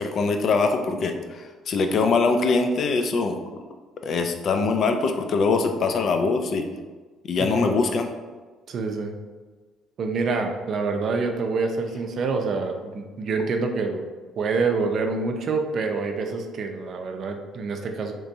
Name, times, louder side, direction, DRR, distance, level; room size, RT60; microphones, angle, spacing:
voice 1, 0.0-3.4 4.0-6.7 7.2-8.1, left 4 dB, 55° left, 5 dB, 0.4 m, -23 dB
voice 2, 7.4-7.8 8.7-9.2 10.0-14.1 14.4-18.1, right 4 dB, 55° right, 4 dB, 0.5 m, -26 dB
3.3 x 2.9 x 2.7 m, 1.4 s
supercardioid pair, 70°, 0 cm